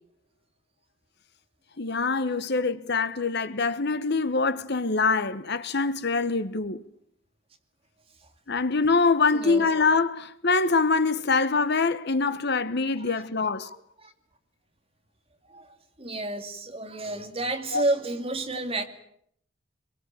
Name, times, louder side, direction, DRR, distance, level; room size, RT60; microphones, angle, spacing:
voice 1, 1.8-6.8 8.5-13.7 17.7-17.8, left 4 dB, 55° left, 1.2 m, -24 dB
voice 2, 9.3-9.6 13.1-13.2 14.0-14.1 15.5-15.7 16.0-18.8, right 2 dB, 25° right, 2.5 m, -30 dB
24.0 x 22.5 x 9.1 m
head